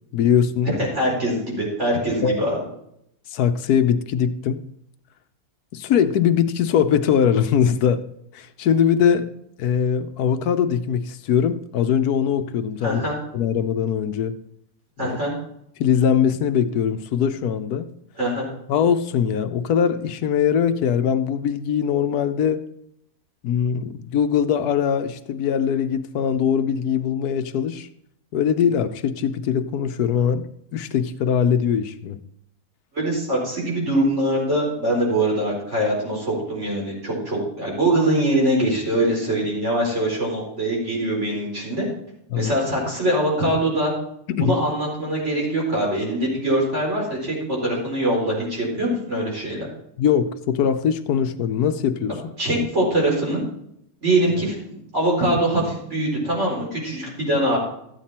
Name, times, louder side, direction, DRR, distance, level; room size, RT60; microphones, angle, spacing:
voice 1, 0.1-0.7 2.2-2.4 3.3-4.6 5.7-8.0 8.3-9.3 9.6-13.0 13.3-14.4 15.0-15.2 15.8-17.9 18.7-22.6 23.4-27.9 28.3-32.2 42.3-42.5 44.3-44.5 50.0-52.1, left 8 dB, 85° left, 10 dB, 1.3 m, -21 dB
voice 2, 0.7-2.6 12.8-13.1 15.0-15.3 18.2-18.4 32.9-41.9 42.3-43.9 44.4-49.7 52.1-53.4 54.0-57.6, right 1 dB, 50° right, -3 dB, 4.9 m, -23 dB
13.5 x 9.1 x 4.3 m, 0.74 s
omnidirectional pair, 1.6 m